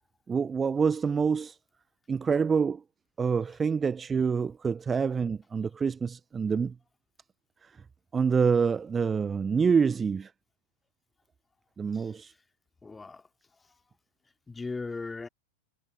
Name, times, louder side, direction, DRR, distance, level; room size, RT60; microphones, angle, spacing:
voice 1, 0.3-1.6 2.1-2.8 3.2-6.7 7.6-7.7 8.1-10.3 11.8-12.3, right 6 dB, 15° right, 0.4 m, -26 dB
voice 2, 11.9-12.3 12.8-13.3 13.6-13.8 14.5-15.3, left 3 dB, 10° left, 2.5 m, -39 dB
figure-of-eight pair, 90°, 0 cm